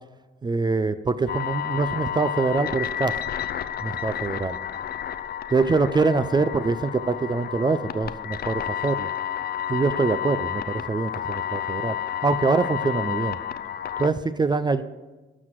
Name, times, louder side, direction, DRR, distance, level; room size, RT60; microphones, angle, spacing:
voice 1, 0.4-3.1 3.8-4.6 5.5-9.1 9.7-12.0 12.2-13.4 14.0-14.8, right 4 dB, 20° right, 12 dB, 0.4 m, -24 dB
sound 1, 1.3-14.1, left 10 dB, 50° left, 0.5 m, -31 dB
12.0 x 5.9 x 4.6 m, 1.2 s
cardioid pair, 90°, 20 cm